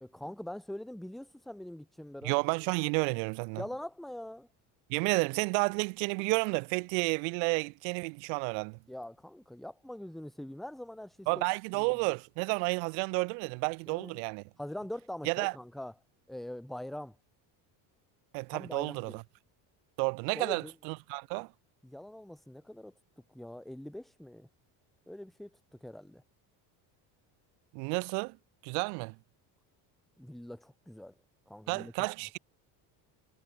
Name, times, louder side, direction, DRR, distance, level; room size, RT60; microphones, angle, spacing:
voice 1, 0.0-2.3 3.6-4.5 8.9-11.4 11.7-12.0 13.9-14.2 14.6-15.9 16.3-17.2 18.5-19.2 20.3-20.7 21.8-22.9 23.3-24.5 25.1-25.5 25.8-26.2 30.2-31.1 31.5-31.9, left 1 dB, ahead, 0.6 m, -43 dB
voice 2, 2.2-3.6 4.9-8.8 11.3-14.4 15.2-15.5 18.3-19.2 20.0-21.5 27.7-28.4 28.6-29.1 31.7-32.4, right 40 dB or more, 85° right, 1.0 m, -31 dB
supercardioid pair, 85°, 49 cm